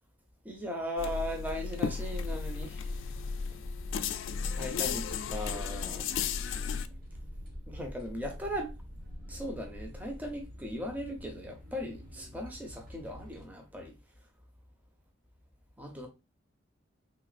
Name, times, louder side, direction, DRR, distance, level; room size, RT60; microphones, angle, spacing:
voice 1, 0.4-2.9 4.5-6.0 7.7-8.7 9.3-13.9 15.8-16.1, equal, 10° right, 0.6 m, -38 dB
sound 1, 1.0-6.9, left 6 dB, 65° left, 0.3 m, -34 dB
sound 2, 2.1-13.4, equal, 45° right, 1.2 m, -45 dB
3.3 x 3.0 x 2.4 m
head